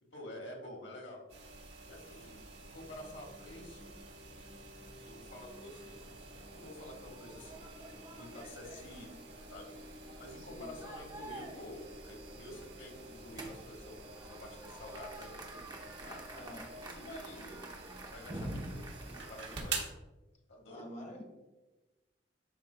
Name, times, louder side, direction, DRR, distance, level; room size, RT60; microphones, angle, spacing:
voice 1, 0.1-1.2 1.9-3.9 5.1-6.0 6.5-7.8 8.1-9.8 10.2-15.4 16.0-17.7 18.1-19.9 20.5-20.9, left 1 dB, 80° left, 0 dB, 1.7 m, -49 dB
sound 1, 1.3-19.9, right 4 dB, 65° right, 1.3 m, -48 dB
sound 2, 2.0-17.0, left 2 dB, 45° right, 1.3 m, -56 dB
sound 3, 5.5-19.7, right 1 dB, 25° right, 0.8 m, -49 dB
voice 2, 16.3-16.7 20.7-21.2, equal, 35° left, 1 dB, 1.2 m, -47 dB
10.5 x 4.4 x 2.2 m, 1.1 s
head